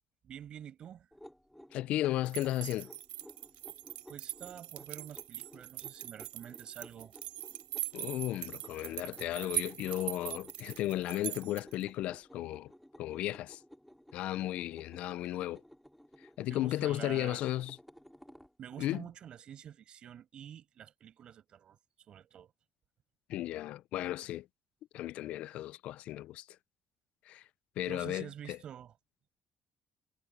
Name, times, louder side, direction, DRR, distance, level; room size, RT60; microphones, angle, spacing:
voice 1, 0.2-1.1 4.1-7.1 16.5-17.4 18.6-21.8 22.1-22.5 27.9-28.9, right 9 dB, 45° right, 5.5 m, -48 dB
sound 1, 1.1-18.5, equal, ahead, 3.1 m, -57 dB
voice 2, 1.7-2.9 7.9-12.7 13.0-13.6 14.1-15.6 16.4-17.8 18.8-19.0 23.3-24.5 24.9-26.5 27.3-27.4 27.8-28.6, left 14 dB, 70° left, 0.3 m, -35 dB
sound 2, 2.3-11.8, right 15 dB, 80° right, 4.0 m, -41 dB
cardioid pair, 160°, 2 cm